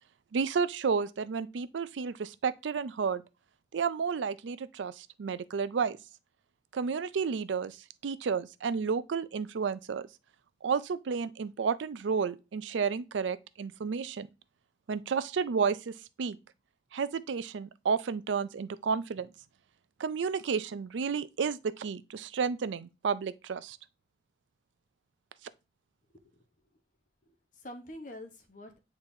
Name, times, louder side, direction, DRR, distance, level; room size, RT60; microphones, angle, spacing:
voice 1, 0.3-3.2 3.7-6.0 6.7-7.8 8.0-10.1 10.6-14.3 14.9-16.4 16.9-19.3 20.0-23.8, right 5 dB, 80° right, 0.4 m, -31 dB
voice 2, 26.1-26.5 27.3-28.8, left 1 dB, 45° left, 1.1 m, -47 dB
8.7 x 4.0 x 2.7 m
head